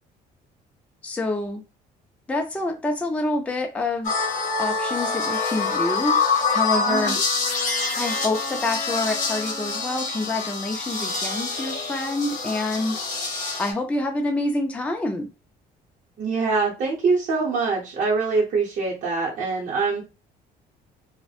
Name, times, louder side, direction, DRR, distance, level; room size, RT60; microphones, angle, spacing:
voice 1, 1.0-1.6 2.3-4.3 4.6-6.2 6.5-7.2 8.0-13.1 13.6-15.3, left 2 dB, 10° left, 3 dB, 0.4 m, -27 dB
sound 1, 4.0-13.7, left 4 dB, 50° left, 0.9 m, -26 dB
voice 2, 6.9-7.2 16.2-20.0, right 4 dB, 50° right, -4 dB, 0.8 m, -24 dB
2.6 x 2.1 x 2.4 m, 0.29 s
cardioid pair, 110°, 17 cm